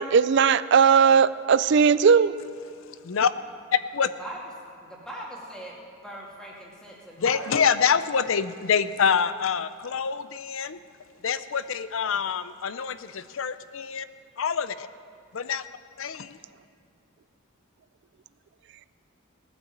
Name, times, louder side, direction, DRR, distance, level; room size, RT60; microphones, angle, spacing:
voice 1, 0.0-2.3, right 6 dB, 55° right, 16 dB, 0.4 m, -18 dB
voice 2, 3.7-4.1 7.2-10.8 11.2-14.0 14.4-14.9 15.3-15.6 16.0-16.3, left 6 dB, 70° left, 14 dB, 0.5 m, -26 dB
voice 3, 4.8-7.5, right 1 dB, 5° left, -3 dB, 2.3 m, -40 dB
17.5 x 9.5 x 7.4 m, 2.3 s
head